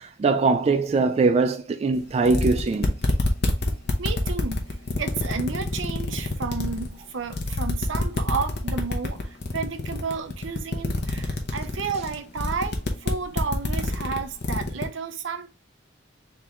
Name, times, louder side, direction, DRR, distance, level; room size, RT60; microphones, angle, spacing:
voice 1, 0.0-2.9, right 4 dB, 35° right, 0.3 m, -22 dB
sound 1, 2.0-2.1 2.3-6.9 7.3-14.8, left 2 dB, 60° left, 0.8 m, -27 dB
voice 2, 4.0-4.6 5.0-15.5, right 5 dB, 80° right, 0.6 m, -32 dB
3.7 x 3.5 x 3.0 m
head